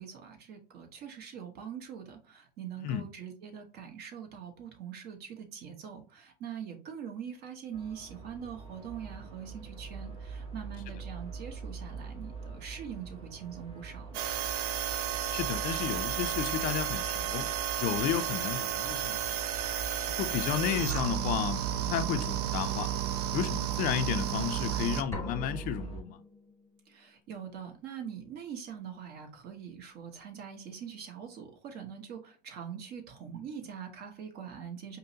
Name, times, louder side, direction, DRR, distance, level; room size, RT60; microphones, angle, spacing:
voice 1, 0.0-14.2 26.9-35.0, right 8 dB, 50° right, 1.1 m, -43 dB
sound 1, 7.7-26.0, right 4 dB, 30° right, 1.1 m, -43 dB
sound 2, 14.1-25.0, right 10 dB, 75° right, 0.5 m, -32 dB
voice 2, 15.3-17.5 17.8-19.3 20.2-22.9 23.3-26.2, left 10 dB, 45° left, 0.4 m, -32 dB
sound 3, 25.1-26.9, left 2 dB, 15° left, 0.8 m, -43 dB
5.1 x 2.1 x 2.7 m
supercardioid pair, 110°, 21 cm